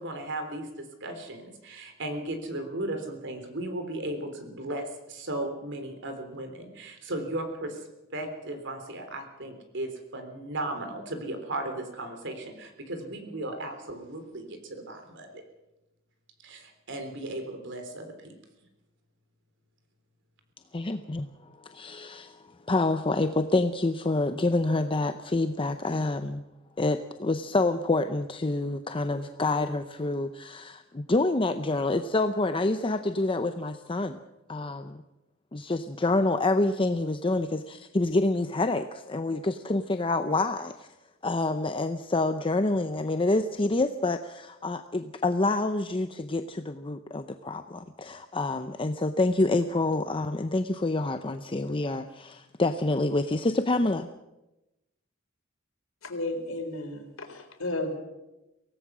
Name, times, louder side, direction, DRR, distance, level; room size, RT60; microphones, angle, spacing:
voice 1, 0.0-7.8 8.1-15.4 16.4-18.3, right 1 dB, 60° right, 6 dB, 3.6 m, -36 dB
voice 2, 20.7-21.3 21.6-26.4 26.8-34.2 34.5-35.0 35.5-40.9 41.2-54.1, left 2 dB, 25° left, 8 dB, 0.7 m, -27 dB
voice 3, 56.0-58.0, left 2 dB, 90° left, 5 dB, 3.7 m, -33 dB
24.0 x 17.5 x 6.2 m, 0.99 s
head